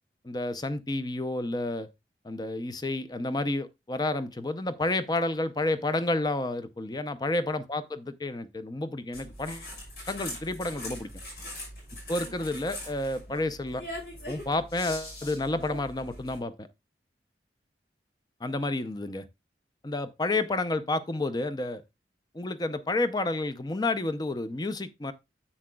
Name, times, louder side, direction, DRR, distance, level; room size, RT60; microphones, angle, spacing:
voice 1, 0.2-1.9 2.2-9.7 10.1-11.1 12.1-13.8 14.3-16.7 18.4-19.3 19.8-21.8 22.3-25.1, left 2 dB, 20° left, 0.5 m, -30 dB
sound 1, 9.1-16.4, left 1 dB, 65° left, 5.9 m, -41 dB
9.8 x 7.5 x 2.3 m
head